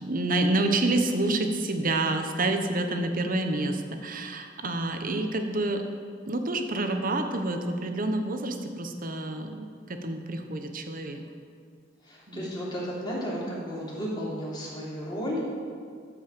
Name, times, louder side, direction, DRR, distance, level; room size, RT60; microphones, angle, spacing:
voice 1, 0.0-5.8 6.3-11.2 12.3-12.5, right 2 dB, 50° right, 6 dB, 1.0 m, -28 dB
voice 2, 12.0-15.4, equal, 25° left, -6 dB, 3.2 m, -33 dB
12.5 x 5.5 x 7.4 m, 2.1 s
head